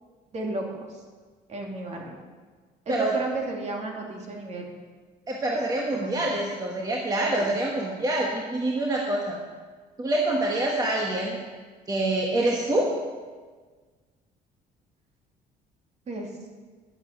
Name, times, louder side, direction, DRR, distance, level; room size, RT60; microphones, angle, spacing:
voice 1, 0.3-1.0 1.5-2.2 2.9-4.7 6.0-6.3 7.2-7.5 16.1-16.3, right 2 dB, 40° right, 0 dB, 2.6 m, -33 dB
voice 2, 5.3-9.4 10.0-11.4 11.9-12.9, right 1 dB, 20° right, -1 dB, 1.4 m, -26 dB
11.0 x 8.2 x 6.7 m, 1.5 s
cardioid pair, 110°, 17 cm